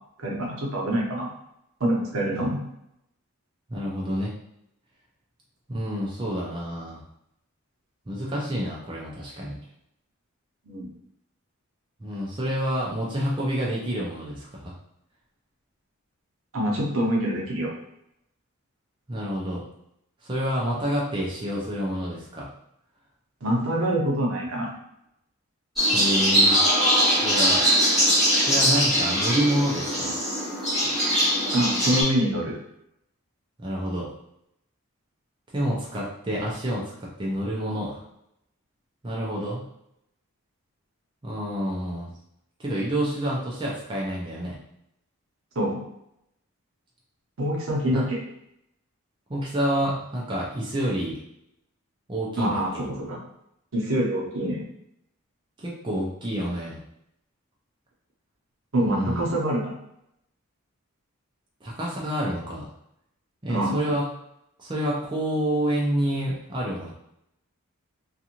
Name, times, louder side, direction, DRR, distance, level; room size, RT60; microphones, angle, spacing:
voice 1, 0.2-1.3 1.8-2.6 10.7-10.9 16.5-17.7 23.4-24.7 31.5-32.6 45.5-45.8 47.4-48.2 52.4-53.2 53.7-54.7 58.7-59.8 63.5-63.8, right 1 dB, 70° right, -2 dB, 0.8 m, -25 dB
voice 2, 3.7-4.3 5.7-7.0 8.1-9.6 12.0-14.7 19.1-19.6 20.2-22.5 25.9-26.6 27.2-27.7 28.5-30.1 33.6-34.1 35.5-36.8 37.2-38.0 39.0-39.6 41.2-42.1 42.6-44.6 47.9-48.0 49.3-51.2 52.1-52.8 55.6-56.8 58.8-59.3 61.6-62.7 63.4-64.1 64.6-66.9, equal, 20° right, -5 dB, 0.5 m, -28 dB
sound 1, 25.8-32.0, equal, ahead, 1.0 m, -21 dB
2.5 x 2.4 x 2.8 m, 0.79 s
head